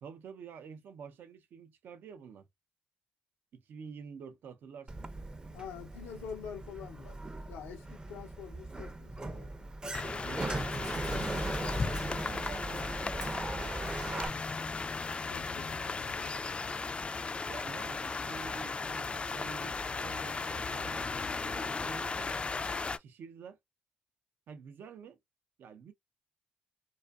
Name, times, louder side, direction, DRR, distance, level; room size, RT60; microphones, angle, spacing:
voice 1, 0.0-2.5 3.5-5.1 10.0-14.5 17.4-22.4 22.9-23.6 24.5-25.2 25.6-25.9, right 6 dB, 70° right, 0.5 m, -49 dB
Sliding door, 4.9-14.3, right 2 dB, 25° right, 0.6 m, -39 dB
voice 2, 5.5-7.2 7.5-9.7 14.5-14.6 15.3-16.3, left 7 dB, 90° left, 0.6 m, -46 dB
sound 1, 9.9-23.0, left 4 dB, 30° left, 0.3 m, -36 dB
2.5 x 2.4 x 2.2 m
supercardioid pair, 55°, 4 cm